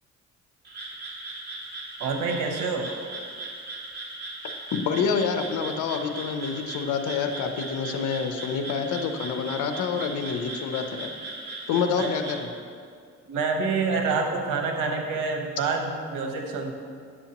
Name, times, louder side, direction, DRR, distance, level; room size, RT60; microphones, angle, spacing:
Frog, 0.6-12.4, right 2 dB, 35° right, 2.0 m, -38 dB
voice 1, 2.0-2.9 12.0-12.1 13.3-16.8, right 4 dB, 90° right, 3 dB, 1.0 m, -27 dB
voice 2, 4.7-11.1 11.7-12.5, left 6 dB, 80° left, 6 dB, 0.6 m, -27 dB
9.8 x 7.0 x 2.9 m, 2.2 s
cardioid pair, 90°, 30 cm